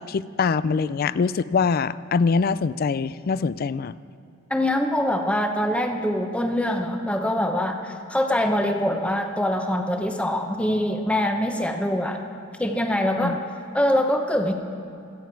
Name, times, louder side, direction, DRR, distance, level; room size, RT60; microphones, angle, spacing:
voice 1, 0.0-3.9 13.2-13.4, left 5 dB, 45° left, 17 dB, 0.4 m, -23 dB
voice 2, 4.5-12.2 12.6-13.4 13.7-14.5, left 1 dB, 5° left, 4 dB, 0.9 m, -24 dB
27.0 x 9.3 x 4.6 m, 2.6 s
head